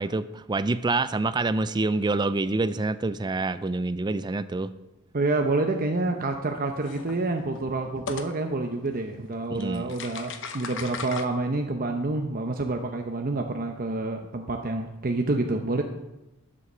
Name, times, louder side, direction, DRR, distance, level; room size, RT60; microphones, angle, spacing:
voice 1, 0.0-4.7 9.5-9.9, right 3 dB, 20° right, 13 dB, 0.4 m, -27 dB
voice 2, 5.1-15.8, right 2 dB, 40° right, 4 dB, 0.8 m, -28 dB
sound 1, 6.1-6.3 6.8-8.3 9.3-9.4 9.6-11.3, left 5 dB, 55° left, 0.9 m, -37 dB
11.5 x 7.8 x 6.7 m, 0.99 s
head